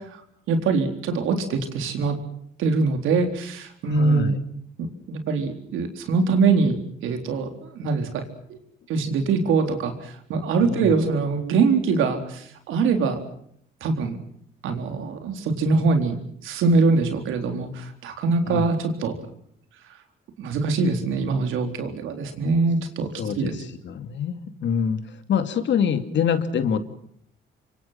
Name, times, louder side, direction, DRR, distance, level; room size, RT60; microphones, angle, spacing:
voice 1, 0.5-2.2 2.6-4.4 5.1-8.2 8.5-8.6 8.9-13.2 13.8-14.2 14.6-16.1 16.4-19.1 20.4-23.1 23.4-23.5, right 4 dB, 85° right, 6 dB, 4.0 m, -23 dB
voice 2, 3.9-4.4 10.6-10.9 18.5-18.7 23.2-25.0 25.3-26.8, left 7 dB, 65° left, 9 dB, 2.6 m, -25 dB
27.5 x 24.5 x 5.9 m, 0.68 s
cardioid pair, 90°, 20 cm